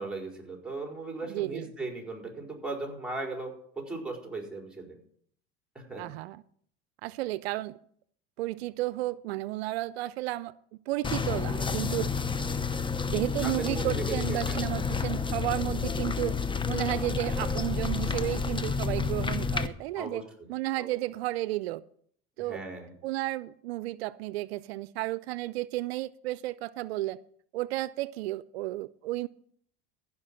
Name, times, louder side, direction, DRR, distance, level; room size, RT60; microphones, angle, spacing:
voice 1, 0.0-5.0 5.7-6.0 13.4-14.7 20.0-20.5 20.8-20.9 22.4-22.9, right 3 dB, 5° right, 4.6 m, -37 dB
voice 2, 1.3-1.7 6.0-6.4 7.0-7.8 8.4-10.5 10.9-12.1 13.1-16.3 16.7-20.2 20.5-21.8 22.4-22.6 23.0-27.2 27.5-29.3, right 17 dB, 85° right, 0.5 m, -32 dB
sound 1, 11.0-19.7, left 5 dB, 15° left, 0.9 m, -30 dB
15.0 x 5.8 x 7.6 m
supercardioid pair, 95°, 30 cm